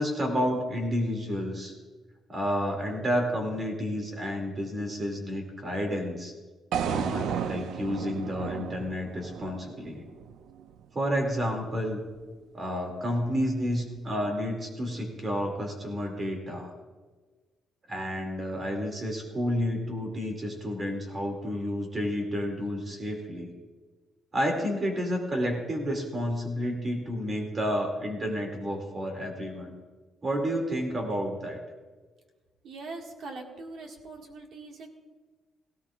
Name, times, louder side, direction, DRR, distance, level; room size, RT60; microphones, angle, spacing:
voice 1, 0.0-1.7 2.3-6.3 6.8-10.1 10.9-12.0 12.5-16.7 17.9-23.5 24.3-29.7 30.2-31.6, equal, 25° right, 2 dB, 2.4 m, -30 dB
sound 1, 6.7-10.8, right 8 dB, 75° right, 0.5 m, -33 dB
voice 2, 32.6-34.9, right 3 dB, 60° right, 2 dB, 1.7 m, -42 dB
18.0 x 16.5 x 2.4 m, 1.3 s
cardioid pair, 165°, 0 cm